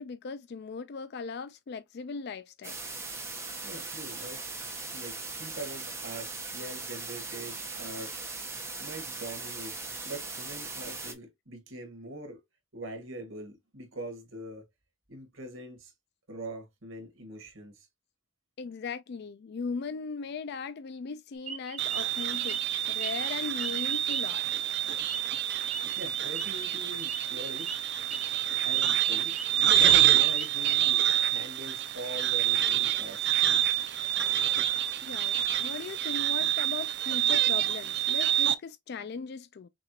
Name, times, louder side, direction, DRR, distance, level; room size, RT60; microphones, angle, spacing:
voice 1, 0.0-2.8 18.6-22.6 22.9-24.5 35.0-39.7, left 5 dB, 55° left, 0.4 m, -38 dB
sound 1, 2.6-11.1, right 3 dB, 15° right, 1.0 m, -39 dB
voice 2, 3.6-4.4 4.9-8.1 8.8-9.8 10.0-12.4 12.7-14.7 15.1-15.9 16.3-17.9 26.0-27.8 28.6-33.3, right 1 dB, 85° right, 2.0 m, -43 dB
sound 2, 21.5-23.3 23.6-26.7 27.0-27.2 27.6-27.8 28.1-28.4 28.7-29.5 29.8-30.8, right 6 dB, 40° right, 0.8 m, -40 dB
sound 3, 21.8-38.5, right 11 dB, 60° right, 0.6 m, -27 dB
6.0 x 2.5 x 2.9 m
head